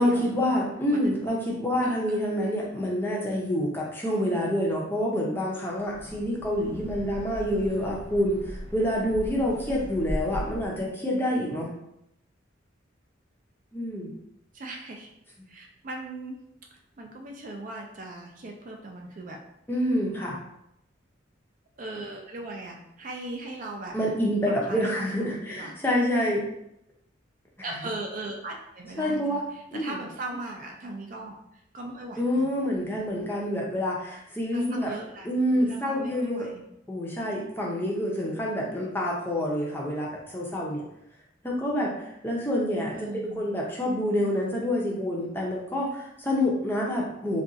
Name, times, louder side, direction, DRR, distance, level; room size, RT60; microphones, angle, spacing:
voice 1, 0.0-11.7 13.7-14.1 19.7-20.4 23.9-26.4 27.6-27.8 29.0-29.4 29.7-30.0 32.2-34.9 35.2-36.5 36.9-40.8 41.4-47.4, equal, 10° left, -3 dB, 0.5 m, -27 dB
voice 2, 1.8-2.5 14.5-15.1 15.5-16.4 17.0-19.4 21.8-24.0 24.5-25.8 27.6-32.5 34.5-35.3 35.5-36.6 42.9-43.4, right 2 dB, 40° right, 1 dB, 0.4 m, -39 dB
Wind, 5.8-10.8, equal, 85° right, 0.9 m, -38 dB
2.5 x 2.3 x 3.8 m, 0.79 s
head